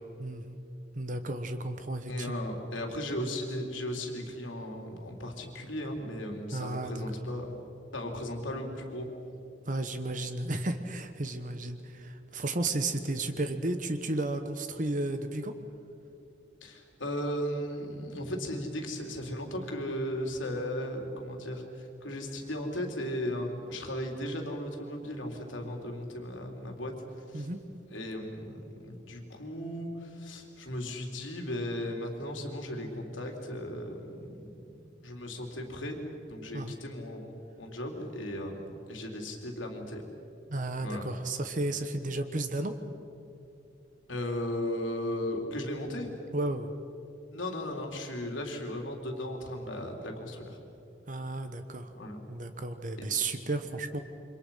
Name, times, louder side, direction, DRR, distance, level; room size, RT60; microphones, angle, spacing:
voice 1, 0.2-0.6 0.9-2.4 6.5-7.0 9.7-15.6 27.3-27.6 36.5-36.7 40.5-42.8 46.3-46.8 51.1-51.9 52.3-54.0, right 2 dB, 45° right, 8 dB, 1.2 m, -33 dB
voice 2, 2.1-7.6 7.9-9.1 16.6-21.6 22.0-26.9 27.3-27.5 27.9-34.7 35.0-36.0 36.3-40.0 40.8-41.0 44.1-46.1 47.3-50.6 51.9-52.2 53.0-53.1, left 1 dB, 90° left, 2 dB, 3.8 m, -36 dB
28.5 x 25.5 x 5.8 m, 2.8 s
head